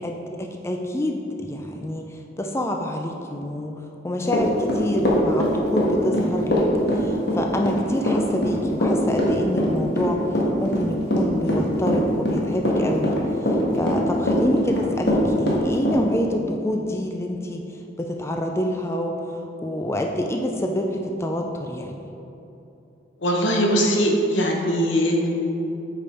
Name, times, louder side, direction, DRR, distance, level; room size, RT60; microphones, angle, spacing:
voice 1, 0.0-6.7 6.9-10.2 10.6-22.0, left 1 dB, 15° left, 3 dB, 0.4 m, -27 dB
Run / Walk footsteps, 4.3-16.0, equal, 60° left, 1.4 m, -21 dB
voice 2, 23.2-25.2, equal, 80° left, 0 dB, 1.2 m, -20 dB
8.5 x 5.3 x 4.3 m, 2.9 s
head